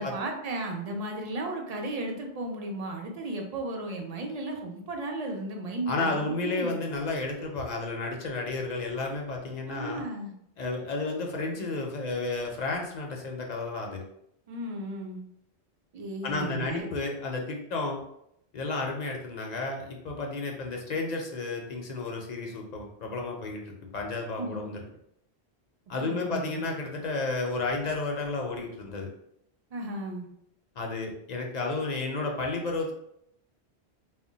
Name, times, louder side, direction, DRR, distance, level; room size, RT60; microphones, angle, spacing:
voice 1, 0.0-6.7 9.7-10.3 14.5-15.2 15.9-16.9 24.4-24.7 26.0-26.7 29.7-30.3, right 2 dB, 50° right, 2 dB, 0.5 m, -35 dB
voice 2, 5.9-10.0 10.6-14.0 16.2-18.0 18.5-24.8 25.9-29.1 30.8-32.9, left 3 dB, 55° left, 1 dB, 0.5 m, -32 dB
2.2 x 2.1 x 3.8 m, 0.75 s
omnidirectional pair, 1.1 m